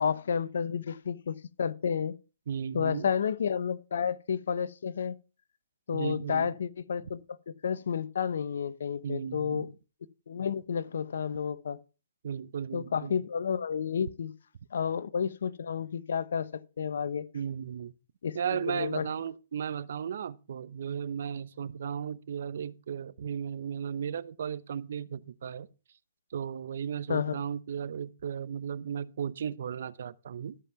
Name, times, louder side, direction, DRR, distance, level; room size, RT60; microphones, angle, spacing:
voice 1, 0.0-2.1 2.7-5.2 5.9-9.7 10.3-11.8 12.7-14.3 14.7-16.5 16.8-17.3 18.2-19.1 27.1-27.3, left 7 dB, 75° left, 0.8 m, -31 dB
voice 2, 2.5-3.1 5.9-6.5 9.0-9.7 12.2-13.2 17.3-17.9 18.3-25.7 26.3-30.6, right 8 dB, 65° right, 0.7 m, -35 dB
13.0 x 5.3 x 5.7 m
hypercardioid pair, 130°, 0 cm